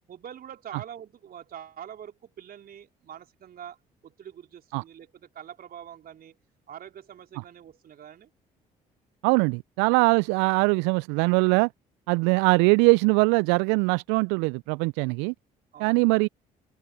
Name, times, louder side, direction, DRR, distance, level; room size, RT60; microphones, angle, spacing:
voice 1, 0.1-3.8 4.0-6.4 6.7-8.3 15.7-16.1, right 9 dB, 50° right, 3.5 m, -44 dB
voice 2, 9.2-11.7 12.1-15.3 15.8-16.3, right 31 dB, 70° right, 0.7 m, -22 dB
open air
figure-of-eight pair, 50°, 19 cm